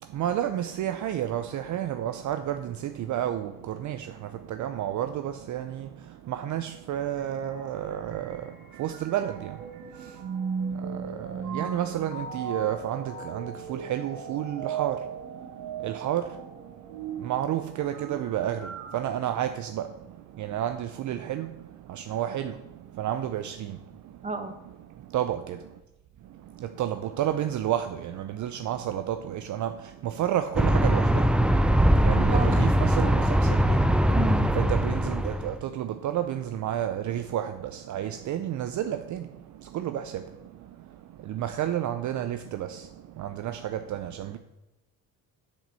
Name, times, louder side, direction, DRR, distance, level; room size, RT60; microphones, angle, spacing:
voice 1, 0.0-25.8 26.2-34.2 34.5-44.4, right 11 dB, 50° right, 0.6 m, -32 dB
sound 1, 7.2-18.9, right 6 dB, 80° right, 1.8 m, -37 dB
sound 2, 30.6-35.5, equal, 5° right, 0.4 m, -22 dB
voice 2, 32.1-32.7 34.1-34.5, right 3 dB, 20° right, 1.2 m, -32 dB
7.4 x 5.2 x 6.8 m
cardioid pair, 105°, 37 cm